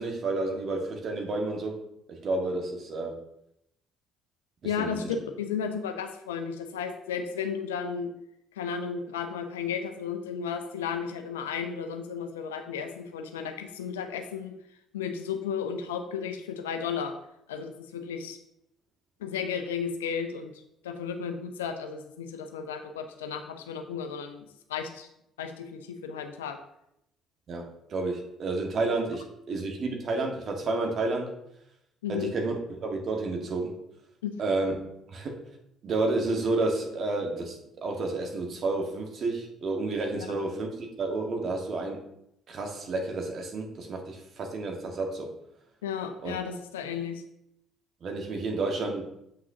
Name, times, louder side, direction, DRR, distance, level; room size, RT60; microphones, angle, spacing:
voice 1, 0.0-1.8 2.1-3.2 4.8-5.1 27.5-31.3 32.1-33.8 34.4-34.7 35.1-35.4 35.8-42.0 42.5-45.3 46.2-46.3 48.0-49.0, right 3 dB, 55° right, 2 dB, 1.6 m, -30 dB
voice 2, 4.6-8.1 8.6-14.6 14.9-17.1 17.5-18.4 19.2-20.5 20.8-25.1 25.4-26.6 32.0-32.3 34.2-34.4 40.2-40.4 45.8-47.2, left 7 dB, 85° left, 7 dB, 0.6 m, -34 dB
7.7 x 6.1 x 2.8 m, 0.79 s
hypercardioid pair, 50°, 0 cm